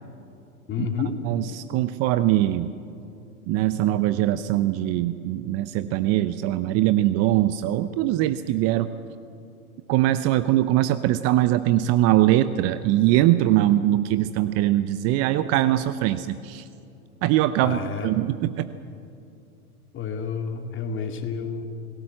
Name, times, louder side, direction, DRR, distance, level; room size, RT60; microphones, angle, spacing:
voice 1, 0.7-1.2 17.6-18.1 19.9-21.6, left 5 dB, 25° left, 5 dB, 2.5 m, -29 dB
voice 2, 1.3-2.7 3.5-8.9 9.9-16.6 17.2-18.7, right 14 dB, 35° right, 12 dB, 0.8 m, -22 dB
28.0 x 18.0 x 7.6 m, 2.5 s
hypercardioid pair, 105°, 44 cm